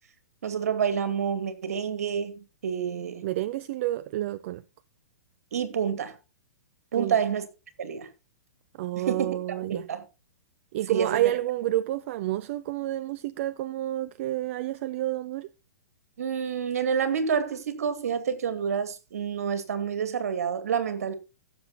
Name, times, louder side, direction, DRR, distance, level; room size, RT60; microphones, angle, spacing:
voice 1, 0.4-3.3 5.5-6.2 6.9-7.5 7.8-8.1 9.0-10.0 10.9-11.3 16.2-21.1, right 7 dB, 65° right, 2.4 m, -28 dB
voice 2, 3.2-4.6 6.9-7.2 8.8-9.9 10.7-15.5, right 14 dB, 50° right, 0.6 m, -29 dB
15.5 x 7.2 x 4.2 m
hypercardioid pair, 120°, 9 cm